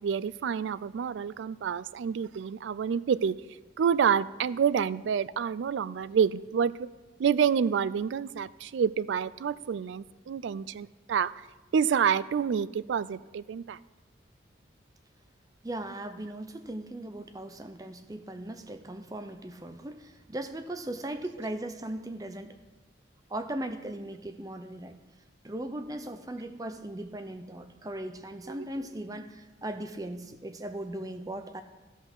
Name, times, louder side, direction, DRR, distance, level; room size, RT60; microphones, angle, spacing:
voice 1, 0.0-3.3 3.8-6.7 7.2-11.3 11.7-13.8 28.5-28.6, right 7 dB, 80° right, 18 dB, 0.3 m, -28 dB
voice 2, 15.6-22.6 23.3-25.0 25.4-31.6, right 1 dB, 20° right, 8 dB, 0.5 m, -38 dB
13.0 x 5.6 x 6.1 m, 1.2 s
head